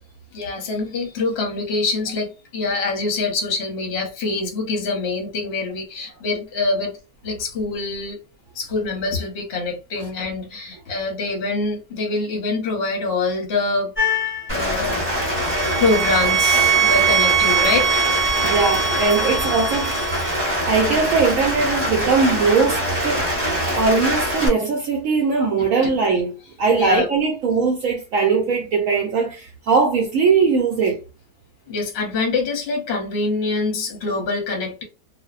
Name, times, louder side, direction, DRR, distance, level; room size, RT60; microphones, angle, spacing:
voice 1, 0.3-6.9 7.2-8.2 8.5-13.9 14.5-15.0 15.8-17.9 26.7-27.1 31.7-34.8, left 3 dB, 55° left, 0.8 m, -24 dB
sound 1, 14.0-14.5 15.2-20.3, right 6 dB, 15° left, 0.5 m, -22 dB
Rain, 14.5-24.5, equal, 20° right, 0.7 m, -24 dB
voice 2, 18.4-19.9 20.3-23.3 23.7-31.0, right 4 dB, 70° right, 0.9 m, -20 dB
2.5 x 2.1 x 2.3 m
omnidirectional pair, 1.6 m